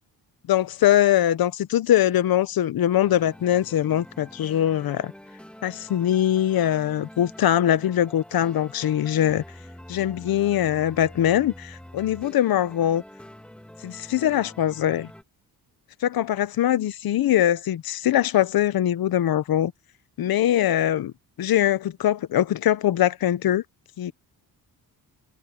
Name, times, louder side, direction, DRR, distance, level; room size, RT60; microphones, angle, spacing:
voice 1, 0.5-5.1 5.6-9.4 9.9-13.0 13.8-15.1 16.0-19.7 20.2-21.1 21.4-23.6 24.0-24.1, left 11 dB, 65° left, 0.9 m, -22 dB
sound 1, 3.0-15.2, equal, 5° left, 2.5 m, -45 dB
wide cardioid pair, 175°, 39 cm